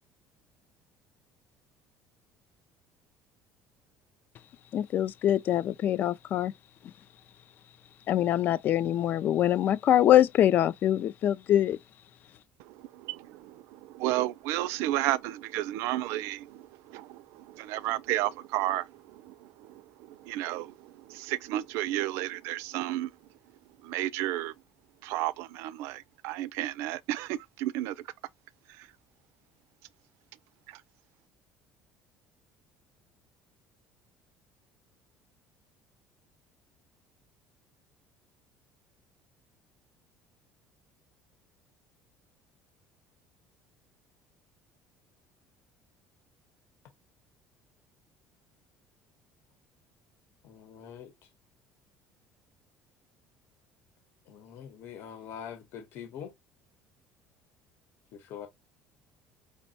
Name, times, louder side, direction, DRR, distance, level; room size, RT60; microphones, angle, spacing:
voice 1, 4.7-6.5 8.1-11.8, left 12 dB, 45° left, 0.3 m, -24 dB
voice 2, 12.7-23.1 23.8-24.5 25.0-27.9 28.8-28.9 30.7-30.8, right 15 dB, 75° right, 0.4 m, -33 dB
voice 3, 50.4-51.1 54.3-56.3 58.1-58.5, left 8 dB, 60° left, 1.0 m, -43 dB
5.1 x 2.1 x 2.6 m
cardioid pair, 145°, 5 cm